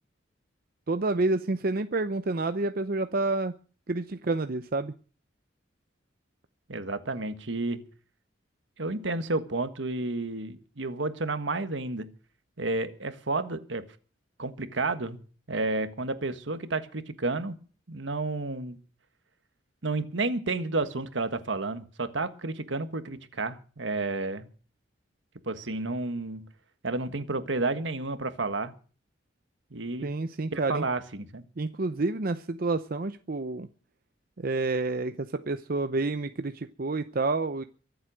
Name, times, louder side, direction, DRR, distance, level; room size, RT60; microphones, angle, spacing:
voice 1, 0.9-3.5 3.9-4.9 30.0-30.8 31.6-33.7 34.4-37.6, right 3 dB, 50° right, 10 dB, 0.7 m, -29 dB
voice 2, 6.7-7.8 8.8-12.1 12.6-13.8 14.4-15.2 15.5-17.5 17.9-18.8 19.8-24.5 25.4-26.4 26.8-28.7 29.7-30.1 30.5-31.4, right 3 dB, 75° right, 10 dB, 1.6 m, -31 dB
23.5 x 7.9 x 6.3 m, 0.40 s
head